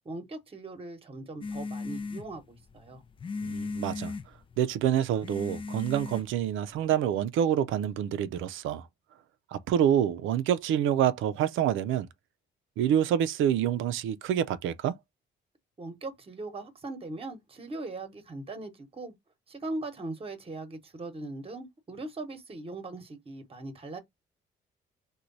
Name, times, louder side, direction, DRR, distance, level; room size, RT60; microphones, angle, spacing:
voice 1, 0.0-3.0 15.8-19.1 19.5-24.0, right 2 dB, 30° right, 1.0 m, -40 dB
sound 1, 1.4-6.9, left 4 dB, 25° left, 0.4 m, -38 dB
voice 2, 3.4-4.1 4.6-8.9 9.5-12.1 12.8-14.9, right 10 dB, 80° right, 0.5 m, -27 dB
3.1 x 2.2 x 3.9 m
cardioid pair, 90°, 20 cm